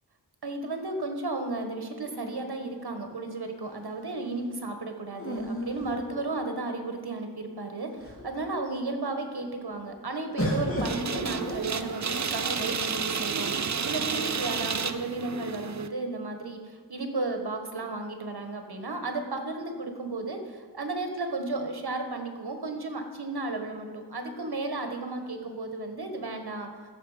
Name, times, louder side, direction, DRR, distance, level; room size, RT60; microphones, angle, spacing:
voice 1, 0.4-13.5 13.8-26.7, right 2 dB, 75° right, 5 dB, 1.4 m, -34 dB
sound 1, 2.0-3.2 5.1-6.7 7.4-7.5 7.8-8.4 10.4-12.2 13.2-13.9, equal, 35° left, 2.4 m, -35 dB
sound 2, 10.8-15.9, right 6 dB, 45° right, 0.6 m, -31 dB
15.0 x 7.2 x 5.0 m, 1.5 s
wide cardioid pair, 70°, 38 cm